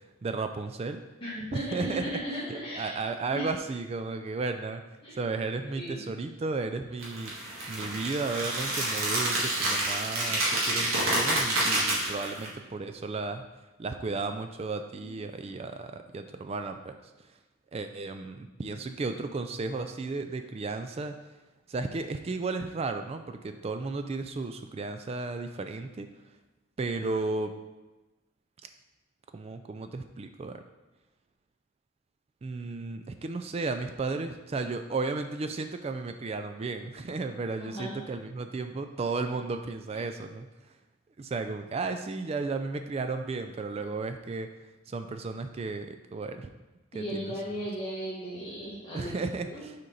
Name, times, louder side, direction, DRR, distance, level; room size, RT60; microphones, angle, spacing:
voice 1, 0.2-1.0 1.5-2.2 2.5-4.8 5.2-7.3 7.7-13.5 13.8-16.9 17.7-21.2 21.7-26.1 26.8-27.5 29.3-30.6 32.4-40.5 41.2-44.5 44.9-46.5 46.9-47.3 48.9-49.7, right 3 dB, 30° right, 8 dB, 0.3 m, -34 dB
voice 2, 1.2-3.0 3.3-3.4 5.0-5.2 5.8-6.0 15.0-15.1 37.6-38.0 46.9-49.1 49.4-49.7, equal, 25° left, -10 dB, 1.5 m, -36 dB
sound 1, 7.0-12.5, right 1 dB, 70° right, 1.7 m, -28 dB
6.3 x 4.4 x 3.9 m, 1.1 s
head